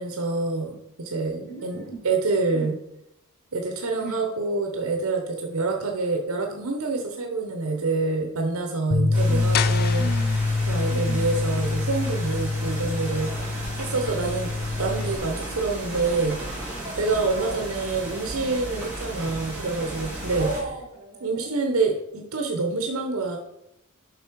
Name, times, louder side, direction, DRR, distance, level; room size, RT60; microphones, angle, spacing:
voice 1, 0.0-2.8 3.5-10.1 10.7-13.3 13.8-14.5 14.8-16.4 16.6-20.5 21.2-23.4, right 3 dB, 85° right, 2 dB, 0.9 m, -27 dB
voice 2, 1.5-2.0 2.5-2.7 4.0-4.3 9.3-9.6 9.9-10.5 10.9-11.3 17.3-17.8 20.4-21.8, right 3 dB, 50° right, 3 dB, 1.7 m, -36 dB
Bass guitar, 8.9-15.2, left 3 dB, 80° left, 0.8 m, -25 dB
sound 1, 9.1-20.6, right 1 dB, 5° right, 3.0 m, -35 dB
sound 2, 9.5-15.2, left 9 dB, 45° left, 0.4 m, -36 dB
7.0 x 5.4 x 4.6 m, 0.84 s
head